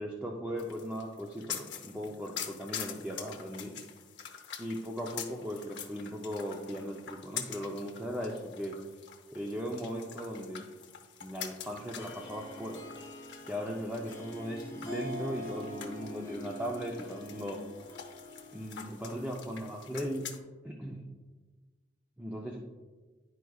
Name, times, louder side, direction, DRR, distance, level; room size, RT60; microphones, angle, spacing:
voice 1, 0.0-3.7 4.6-8.8 9.3-10.6 11.2-12.8 13.4-17.6 18.5-20.3 20.6-21.0 22.2-22.6, equal, 10° right, -1 dB, 0.5 m, -38 dB
sound 1, 0.6-20.4, left 8 dB, 60° left, 0.8 m, -46 dB
Harp, 11.9-19.7, left 1 dB, 15° left, 1.0 m, -45 dB
10.5 x 4.7 x 2.3 m, 1.3 s
head